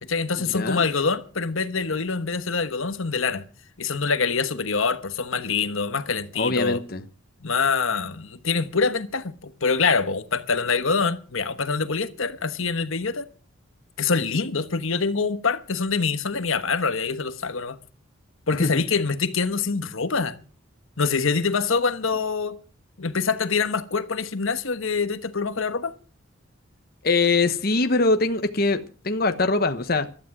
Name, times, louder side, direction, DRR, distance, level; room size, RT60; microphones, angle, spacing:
voice 1, 0.0-3.4 3.8-6.8 7.4-13.3 14.0-17.8 18.5-20.4 21.0-22.6 23.0-25.9, left 4 dB, 70° left, 1.2 m, -25 dB
voice 2, 0.5-0.8 6.3-7.0 18.6-18.7 27.0-30.1, left 3 dB, 45° left, 1.0 m, -22 dB
15.5 x 12.0 x 6.1 m
head